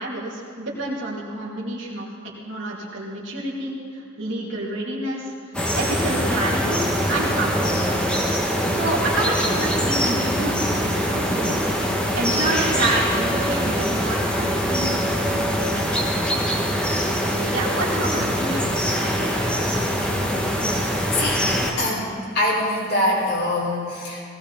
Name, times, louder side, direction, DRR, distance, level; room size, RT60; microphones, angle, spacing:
voice 1, 0.0-2.1 2.5-3.8 4.2-5.3 5.7-8.1 8.7-11.6 12.1-14.9 15.2-16.2 17.2-19.5, right 2 dB, 65° right, -5 dB, 2.8 m, -28 dB
sound 1, 5.5-21.7, equal, 5° left, 1.5 m, -23 dB
voice 2, 20.6-21.5 21.8-24.2, left 1 dB, 55° left, -5 dB, 4.9 m, -24 dB
19.0 x 17.0 x 4.1 m, 2.4 s
head